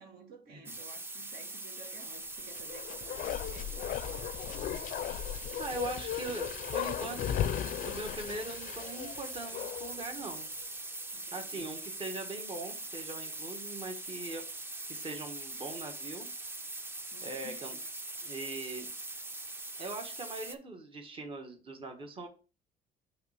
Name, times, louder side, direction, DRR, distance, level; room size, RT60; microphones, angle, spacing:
voice 1, 0.0-4.3 11.1-11.7 17.1-17.6, right 4 dB, 65° right, 1.3 m, -53 dB
sound 1, 0.7-20.6, right 2 dB, 15° right, 0.5 m, -42 dB
Bark, 2.5-10.1 10.4-10.5, left 11 dB, 50° left, 0.4 m, -37 dB
voice 2, 5.6-7.6 7.9-10.5 11.3-14.4 14.9-16.3 17.2-17.8 18.2-18.9 19.8-22.3, right 2 dB, 30° right, 1.2 m, -41 dB
5.7 x 3.2 x 5.6 m
cardioid pair, 110°, 17 cm